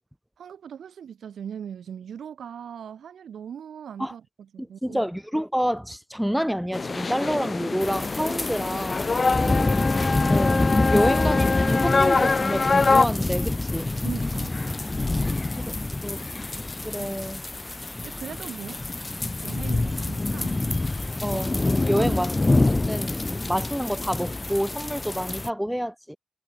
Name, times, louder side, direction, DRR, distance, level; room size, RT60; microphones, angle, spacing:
voice 1, 0.4-5.0 9.2-9.7 14.0-14.6 17.0-17.1 18.0-18.8 19.4-20.6 21.3-21.4 22.0-22.2, right 8 dB, 85° right, 2.2 m, -39 dB
voice 2, 4.8-9.1 10.3-13.9 15.6-15.7 16.0-16.4 16.8-17.4 21.2-22.3 22.7-26.2, equal, 5° right, 1.1 m, -28 dB
sound 1, 6.7-13.1, left 4 dB, 45° left, 0.8 m, -24 dB
sound 2, 7.8-25.5, left 2 dB, 30° left, 0.4 m, -26 dB
cardioid pair, 50°, 0 cm